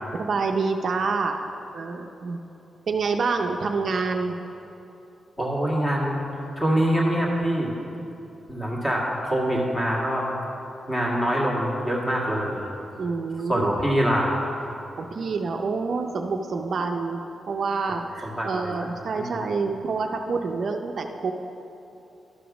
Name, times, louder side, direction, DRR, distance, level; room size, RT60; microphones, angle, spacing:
voice 1, 0.2-1.5 1.7-2.4 2.9-4.4 13.0-13.7 15.0-21.3, right 4 dB, 55° right, 4 dB, 0.5 m, -27 dB
voice 2, 5.4-6.2 6.6-7.7 8.5-10.3 10.9-12.6 13.5-14.3 18.2-19.4, equal, 15° left, -4 dB, 1.8 m, -24 dB
12.0 x 5.1 x 6.0 m, 2.9 s
wide cardioid pair, 125°, 0 cm